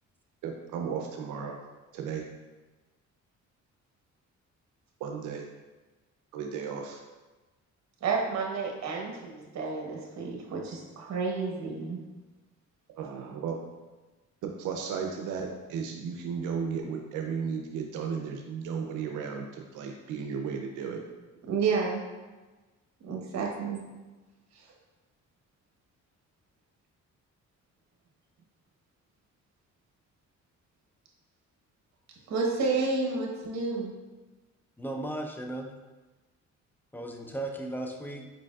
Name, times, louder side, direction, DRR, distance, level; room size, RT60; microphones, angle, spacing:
voice 1, 0.4-1.6 1.9-2.2 5.0-5.4 6.3-7.0 13.0-13.6 14.4-21.0, right 6 dB, 85° right, 2 dB, 0.5 m, -34 dB
voice 2, 8.0-12.0 21.5-22.0 23.0-23.8 32.3-33.9, right 4 dB, 65° right, 0 dB, 1.1 m, -30 dB
voice 3, 34.8-35.8 36.9-38.3, right 1 dB, 5° left, 2 dB, 0.5 m, -36 dB
5.0 x 4.5 x 2.3 m, 1.2 s
cardioid pair, 90°, 30 cm